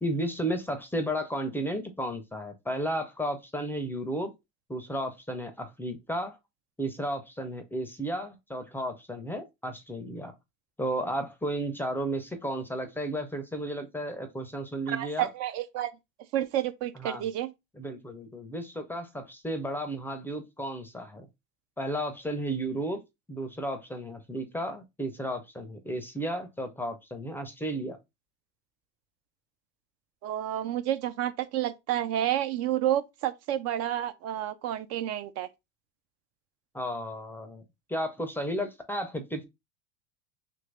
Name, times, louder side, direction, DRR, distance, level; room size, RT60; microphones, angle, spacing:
voice 1, 0.0-4.3 4.7-6.4 6.8-10.3 10.8-15.3 17.0-17.3 17.8-21.3 21.8-23.0 23.3-28.0 36.7-37.6 37.9-39.5, right 1 dB, 5° left, 0.5 m, -33 dB
voice 2, 14.9-15.9 16.3-17.5 30.2-35.5, right 12 dB, 50° right, 0.5 m, -30 dB
2.9 x 2.6 x 3.2 m
supercardioid pair, 105°, 32 cm